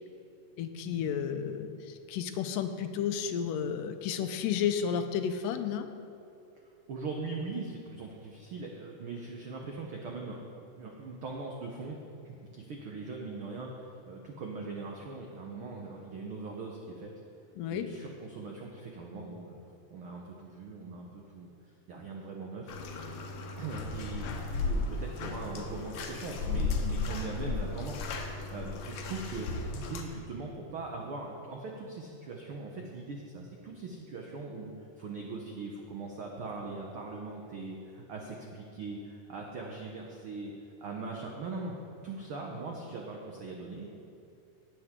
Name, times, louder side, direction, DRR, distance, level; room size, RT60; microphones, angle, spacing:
voice 1, 0.6-1.8 2.1-5.9 17.6-17.9, left 8 dB, 85° left, 8 dB, 2.3 m, -32 dB
voice 2, 6.9-12.0 12.2-17.1 17.7-19.6 19.9-21.5 21.9-22.7 23.6-28.1 28.5-40.5 40.8-41.8 42.0-43.9, right 3 dB, 85° right, 0 dB, 1.1 m, -41 dB
Bathtub (filling or washing), 22.7-30.0, left 3 dB, 65° left, 1.8 m, -35 dB
18.0 x 7.8 x 3.7 m, 2.7 s
omnidirectional pair, 3.8 m